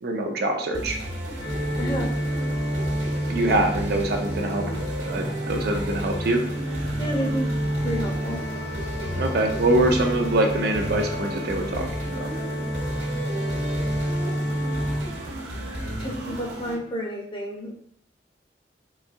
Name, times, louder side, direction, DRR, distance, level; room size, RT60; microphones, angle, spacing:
voice 1, 0.0-1.0 3.3-6.4 9.2-12.3, right 1 dB, 60° right, 3 dB, 0.5 m, -24 dB
sound 1, 0.7-16.7, right 1 dB, 75° right, 1.0 m, -33 dB
sound 2, 1.4-15.0, equal, 90° left, 1.0 m, -29 dB
voice 2, 1.8-2.1 7.0-7.5 7.8-8.4 16.0-17.7, equal, 30° left, -1 dB, 0.6 m, -30 dB
3.9 x 2.6 x 2.5 m, 0.64 s
head